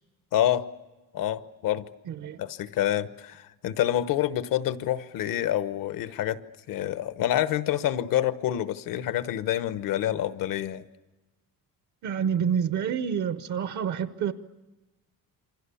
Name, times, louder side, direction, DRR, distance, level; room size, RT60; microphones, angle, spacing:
voice 1, 0.3-0.7 1.1-1.9 2.4-6.4 6.7-10.8, left 12 dB, 60° left, 13 dB, 1.1 m, -27 dB
voice 2, 2.1-2.4 12.0-14.3, right 8 dB, 50° right, 11 dB, 0.9 m, -28 dB
28.5 x 25.0 x 7.0 m, 1.1 s
cardioid pair, 175°, 37 cm